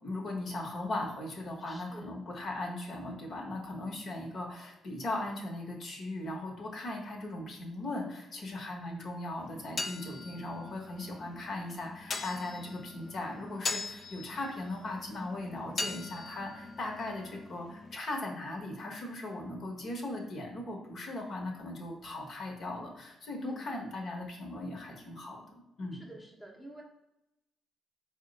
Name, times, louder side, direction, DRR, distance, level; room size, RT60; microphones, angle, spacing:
voice 1, 0.0-25.4 25.8-26.0, left 2 dB, 60° left, 0 dB, 1.0 m, -38 dB
voice 2, 1.7-2.1 23.4-23.6 25.9-26.8, right 1 dB, 5° left, -2 dB, 0.7 m, -46 dB
sound 1, 9.4-18.0, left 3 dB, 45° left, 0.3 m, -41 dB
4.2 x 2.2 x 3.9 m, 0.91 s
cardioid pair, 90°, 0 cm